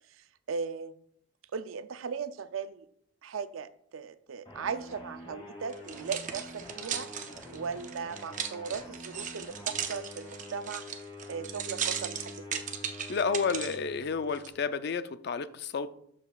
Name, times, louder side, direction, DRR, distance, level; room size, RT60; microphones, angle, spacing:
voice 1, 0.5-1.0 1.5-2.9 3.2-7.1 7.5-10.8 11.3-12.6, right 5 dB, 80° right, 13 dB, 0.4 m, -38 dB
sound 1, 4.5-14.7, left 2 dB, 25° left, 2.1 m, -47 dB
sound 2, 5.7-13.8 14.3-14.5, right 8 dB, 40° right, 0.6 m, -37 dB
voice 2, 13.1-15.9, left 5 dB, 55° left, 13 dB, 0.4 m, -31 dB
12.5 x 5.1 x 2.3 m, 0.70 s
head